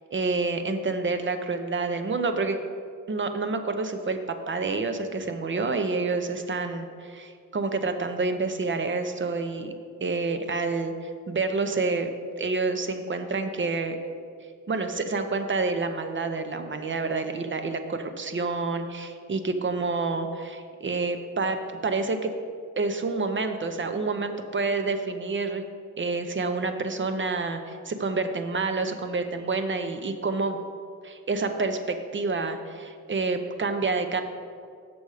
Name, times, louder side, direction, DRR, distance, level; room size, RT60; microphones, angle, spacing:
voice 1, 0.1-2.6 3.1-4.2 4.5-9.7 10.0-12.1 12.4-14.0 14.7-21.6 21.8-22.3 22.8-25.6 26.0-30.6 31.0-34.2, right 3 dB, 40° right, 7 dB, 0.6 m, -28 dB
6.9 x 6.6 x 4.8 m, 2.2 s
wide cardioid pair, 125°, 32 cm